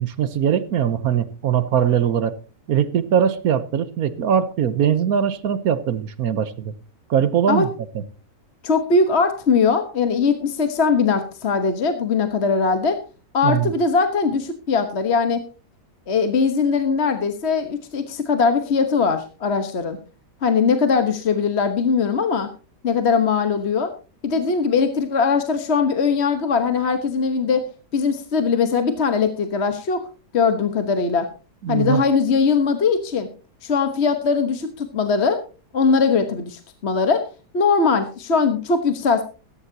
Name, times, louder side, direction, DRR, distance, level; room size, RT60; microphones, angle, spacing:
voice 1, 0.0-2.3 2.7-6.7 7.1-7.7 7.9-8.0 13.4-13.7 31.6-32.0, right 9 dB, 65° right, 1.2 m, -21 dB
voice 2, 8.6-13.0 13.3-15.4 16.1-20.0 20.4-22.5 22.8-23.9 24.2-27.6 27.9-30.0 30.3-31.3 31.7-33.3 33.6-35.4 35.7-37.3 37.5-39.2, left 5 dB, 45° left, 1.3 m, -20 dB
15.5 x 14.5 x 2.8 m
omnidirectional pair, 1.8 m